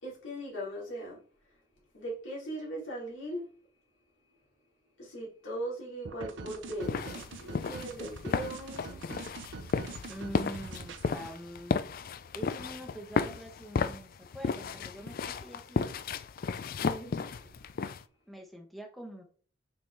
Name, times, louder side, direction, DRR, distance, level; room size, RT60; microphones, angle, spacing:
voice 1, 0.0-1.2 1.9-3.5 5.0-9.0 16.8-17.5, right 1 dB, 85° left, 3.3 m, -39 dB
sound 1, 6.0-11.1, right 4 dB, 75° right, 0.7 m, -44 dB
sound 2, 6.8-18.0, left 5 dB, 50° left, 0.3 m, -34 dB
voice 2, 10.1-11.9 12.3-15.9 18.3-19.2, right 1 dB, ahead, 1.0 m, -44 dB
6.0 x 4.8 x 3.3 m
head